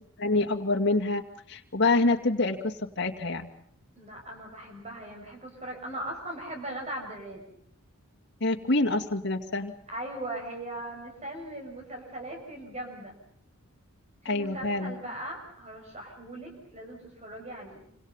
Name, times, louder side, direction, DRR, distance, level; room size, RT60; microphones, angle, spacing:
voice 1, 0.2-1.2 1.5-3.5 8.4-9.7 14.2-14.9, left 2 dB, 50° left, 3 dB, 2.3 m, -26 dB
voice 2, 4.0-7.4 9.9-13.2 14.2-17.8, right 1 dB, 30° right, 1 dB, 6.8 m, -39 dB
27.0 x 26.5 x 5.6 m, 0.65 s
head